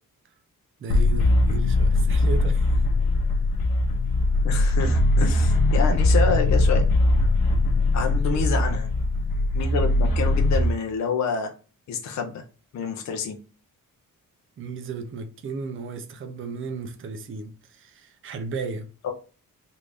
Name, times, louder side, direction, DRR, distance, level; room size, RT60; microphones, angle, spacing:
voice 1, 0.8-2.8 8.0-8.4 14.6-18.9, right 4 dB, 40° right, 0.4 m, -35 dB
sound 1, 0.9-10.7, left 2 dB, 80° left, 0.8 m, -21 dB
voice 2, 4.4-6.9 7.9-8.9 9.5-11.5 11.9-12.4 12.7-13.4 19.0-19.1, left 6 dB, 55° left, 0.5 m, -28 dB
3.3 x 2.5 x 3.3 m
wide cardioid pair, 180°, 34 cm